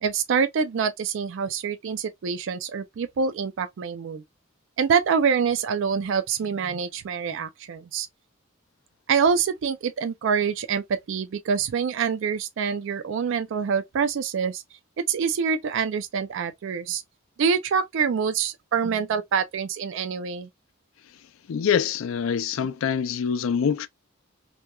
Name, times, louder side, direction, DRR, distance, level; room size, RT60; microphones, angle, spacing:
voice 1, 0.0-4.2 4.8-8.1 9.1-14.6 15.1-17.0 17.4-20.5, right 6 dB, 65° right, 0.4 m, -25 dB
voice 2, 21.5-23.9, left 7 dB, 75° left, 0.4 m, -25 dB
2.9 x 2.2 x 2.2 m
head